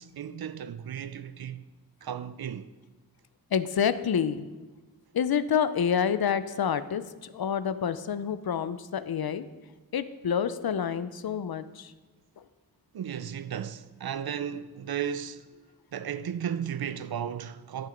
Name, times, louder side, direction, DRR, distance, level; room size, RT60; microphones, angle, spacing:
voice 1, 0.0-1.6 2.0-2.7 12.9-15.5 15.9-17.9, right 8 dB, 80° right, 0.5 m, -35 dB
voice 2, 3.5-4.5 5.1-9.4 9.9-11.9, left 7 dB, 80° left, 0.6 m, -28 dB
12.0 x 6.8 x 5.1 m
wide cardioid pair, 85°, 36 cm